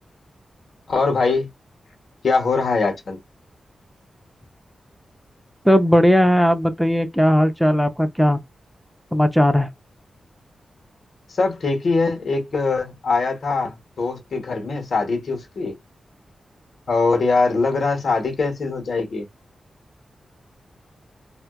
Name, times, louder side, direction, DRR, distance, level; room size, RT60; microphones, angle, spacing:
voice 1, 0.9-1.5 2.2-3.2 11.4-15.8 16.9-19.3, left 3 dB, 55° left, 1.1 m, -22 dB
voice 2, 5.6-8.4 9.1-9.7, equal, ahead, 0.5 m, -17 dB
4.2 x 2.2 x 2.3 m
wide cardioid pair, 170°, 0 cm